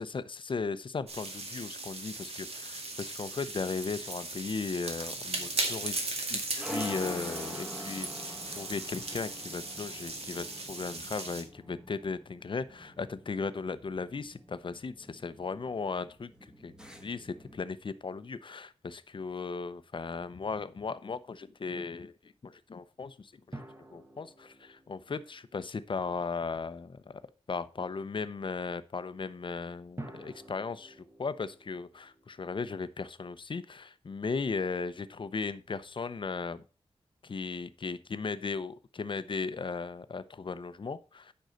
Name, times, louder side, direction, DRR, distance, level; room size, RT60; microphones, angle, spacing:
voice 1, 0.0-6.0 6.3-8.1 8.6-16.7 17.0-23.6 23.9-27.2 27.5-36.6 37.2-41.3, left 4 dB, 50° left, 13 dB, 0.7 m, -37 dB
sound 1, 1.1-11.4, right 2 dB, 70° right, 2.1 m, -37 dB
sound 2, 4.3-17.6, equal, 5° right, 1.3 m, -46 dB
sound 3, 23.5-26.4 30.0-33.3, right 1 dB, 25° right, 1.3 m, -50 dB
9.2 x 5.5 x 5.1 m, 0.34 s
wide cardioid pair, 110°, 11 cm